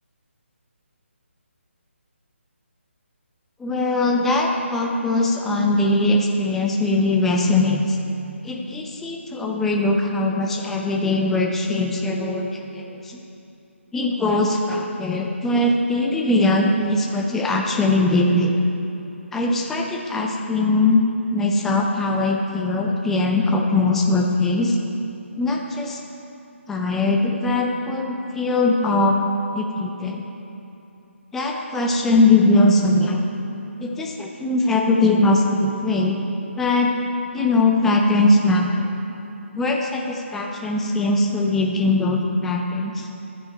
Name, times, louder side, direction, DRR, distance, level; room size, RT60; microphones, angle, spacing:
voice 1, 3.6-8.0 8.4-13.2 13.9-18.5 19.3-21.0 21.3-24.8 25.4-26.0 26.7-29.2 29.5-30.2 31.3-33.3 33.8-36.2 36.6-36.9 37.3-38.9 39.5-43.1, left 2 dB, 5° left, 0 dB, 0.4 m, -21 dB
13.0 x 6.2 x 4.3 m, 2.9 s
figure-of-eight pair, 145°, 7 cm